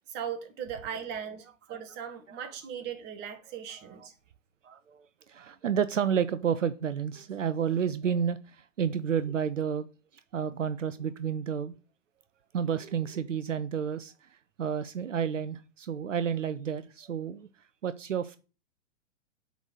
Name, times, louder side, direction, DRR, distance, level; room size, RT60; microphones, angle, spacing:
voice 1, 0.1-4.1, right 8 dB, 25° right, 1.5 m, -38 dB
voice 2, 4.6-8.4 8.8-9.9 10.3-11.7 12.5-14.1 14.6-17.5 17.8-18.4, right 7 dB, 75° right, 0.6 m, -30 dB
8.0 x 4.1 x 6.5 m
figure-of-eight pair, 110°, 38 cm